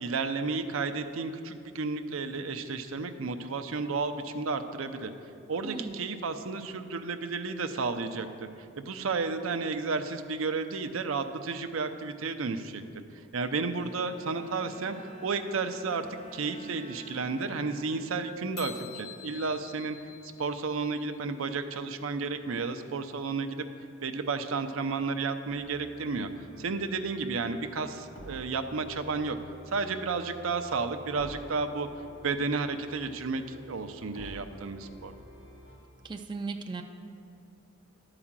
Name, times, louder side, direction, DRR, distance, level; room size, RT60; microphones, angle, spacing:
voice 1, 0.0-5.1 5.5-8.3 8.8-12.8 13.3-16.1 16.3-20.1 20.4-23.6 24.0-26.3 26.6-29.4 29.7-31.9 32.2-35.1, right 4 dB, 75° right, 8 dB, 0.6 m, -32 dB
Bowed string instrument, 13.7-19.2, equal, 35° left, 0.6 m, -51 dB
sound 1, 18.6-21.2, left 10 dB, 90° left, 0.5 m, -46 dB
sound 2, 25.5-35.8, right 1 dB, 70° left, 2.6 m, -50 dB
voice 2, 36.0-36.8, right 3 dB, 20° right, 4 dB, 0.4 m, -36 dB
11.0 x 4.9 x 7.3 m, 2.6 s
head